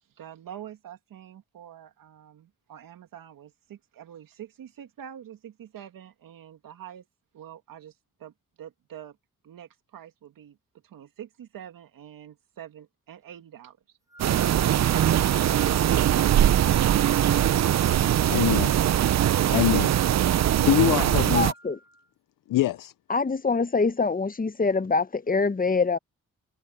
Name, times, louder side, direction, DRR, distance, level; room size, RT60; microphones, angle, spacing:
voice 1, 0.0-7.1 7.3-9.2 9.4-10.6 10.8-14.0, right 10 dB, 85° right, 2.4 m, -46 dB
Wind instrument woodwind instrument, 14.1-22.1, equal, 10° right, 6.3 m, -49 dB
sound 1, 14.2-21.5, right 11 dB, 55° right, 0.5 m, -21 dB
voice 2, 18.3-18.7 19.5-19.9 20.6-21.5 22.5-22.9, left 14 dB, 75° left, 0.6 m, -23 dB
voice 3, 21.3-21.8 23.1-26.0, left 4 dB, 25° left, 0.9 m, -24 dB
cardioid pair, 60°, 33 cm